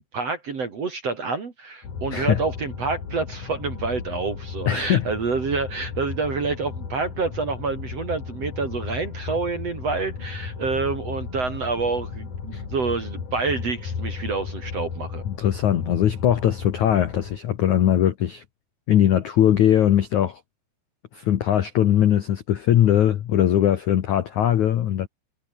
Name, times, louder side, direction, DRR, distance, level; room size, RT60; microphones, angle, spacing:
voice 1, 0.0-15.2, right 4 dB, 40° right, 2.8 m, -28 dB
sound 1, 1.8-17.4, left 5 dB, 45° left, 5.2 m, -35 dB
voice 2, 2.1-2.4 4.7-5.1 12.5-12.6 15.3-18.4 18.9-20.4 21.1-25.1, left 11 dB, 70° left, 1.8 m, -20 dB
omnidirectional pair, 5.4 m